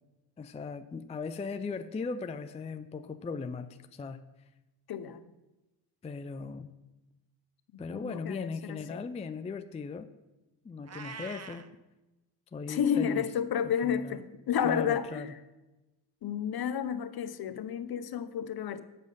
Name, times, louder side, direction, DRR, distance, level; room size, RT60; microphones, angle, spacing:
voice 1, 0.4-4.2 6.0-6.7 7.8-10.1 10.6-11.7 12.5-13.3 13.8-14.2 14.6-15.3, left 4 dB, 15° left, 9 dB, 0.4 m, -38 dB
voice 2, 4.9-5.2 7.9-9.0 12.7-15.3 16.2-18.8, left 8 dB, 50° left, 12 dB, 0.8 m, -31 dB
Meow, 10.8-11.7, right 5 dB, 30° right, 0.8 m, -43 dB
7.3 x 6.5 x 5.4 m, 1.0 s
supercardioid pair, 60°, 49 cm